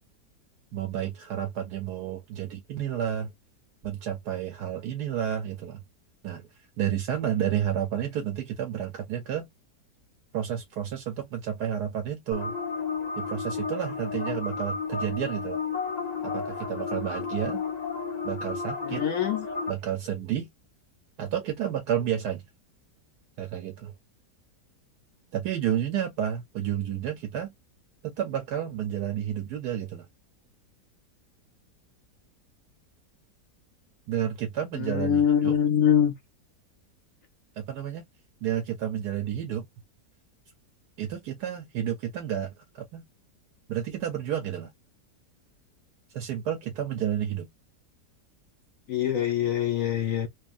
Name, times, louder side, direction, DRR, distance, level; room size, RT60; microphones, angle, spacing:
voice 1, 0.7-3.3 3.8-5.8 6.2-6.5 6.8-9.5 10.3-12.5 13.2-15.6 16.2-17.6 18.2-19.0 19.7-20.5 21.2-22.4 23.4-23.9 25.3-27.5 28.0-30.1 34.1-35.6 37.6-38.0 38.4-39.7 41.0-43.0 43.7-44.7 46.1-47.5, right 10 dB, 75° right, 1.2 m, -31 dB
sound 1, 12.3-19.7, left 5 dB, 40° left, 0.6 m, -32 dB
voice 2, 18.8-19.5 34.8-36.1 48.9-50.3, left 9 dB, 65° left, 0.8 m, -24 dB
3.2 x 2.3 x 2.4 m
omnidirectional pair, 1.8 m